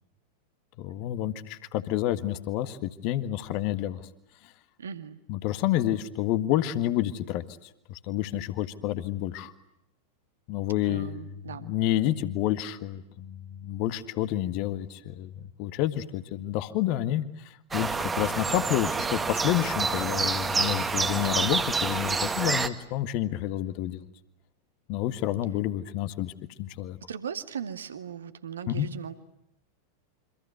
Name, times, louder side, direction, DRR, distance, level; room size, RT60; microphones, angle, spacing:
voice 1, 0.8-4.1 4.4-4.5 5.3-9.5 10.5-24.0 24.9-26.3 26.6-27.0 28.7-28.9, left 13 dB, 45° left, 11 dB, 1.7 m, -29 dB
voice 2, 4.8-5.2 10.9-11.7 27.1-29.1, right 7 dB, 65° right, 9 dB, 2.1 m, -38 dB
sound 1, 17.7-22.7, right 4 dB, 15° right, 1.9 m, -28 dB
28.0 x 26.0 x 8.1 m, 0.81 s
figure-of-eight pair, 90°, 0 cm